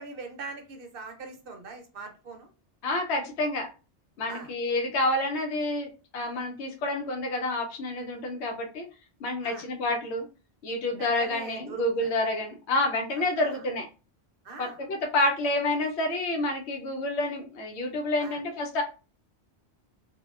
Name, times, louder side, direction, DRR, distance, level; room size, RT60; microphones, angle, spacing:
voice 1, 0.0-2.5 4.3-4.5 9.4-9.7 11.0-12.1 13.2-13.6 14.4-14.8 18.2-18.4, right 4 dB, 60° right, 3 dB, 0.8 m, -42 dB
voice 2, 2.8-3.7 4.2-8.9 9.2-10.2 10.6-13.9 14.6-18.8, left 2 dB, 80° left, 2 dB, 1.0 m, -28 dB
3.4 x 2.3 x 2.3 m, 0.33 s
omnidirectional pair, 1.1 m